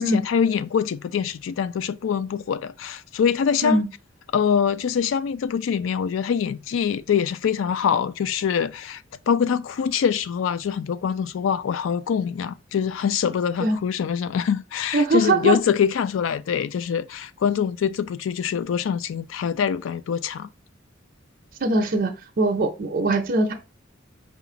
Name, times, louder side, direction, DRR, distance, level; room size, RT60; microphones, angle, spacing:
voice 1, 0.0-3.8 4.3-20.5, left 7 dB, 75° left, 0.3 m, -24 dB
voice 2, 14.9-15.6 21.6-23.5, right 2 dB, 50° right, 0.6 m, -21 dB
4.9 x 2.4 x 3.8 m
head